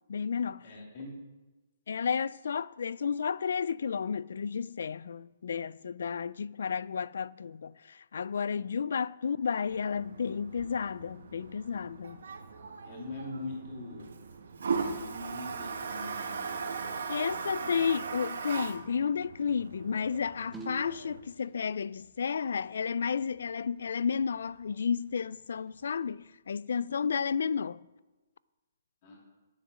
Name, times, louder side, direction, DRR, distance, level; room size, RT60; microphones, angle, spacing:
voice 1, 0.1-0.7 1.9-12.2 17.1-27.8, left 6 dB, 60° left, 0.3 m, -32 dB
voice 2, 0.6-1.1 12.8-14.1 14.8-17.0 17.3-17.9 29.0-29.2, left 2 dB, 25° left, 2.8 m, -43 dB
Toilet flush, 9.7-21.2, right 5 dB, 65° right, 1.3 m, -39 dB
sound 1, 20.5-21.3 23.0-23.1 23.3-23.4 23.9-24.0 24.4-24.5 25.3-26.1, right 3 dB, 5° right, 0.7 m, -44 dB
10.0 x 8.2 x 6.2 m
hypercardioid pair, 180°, 0 cm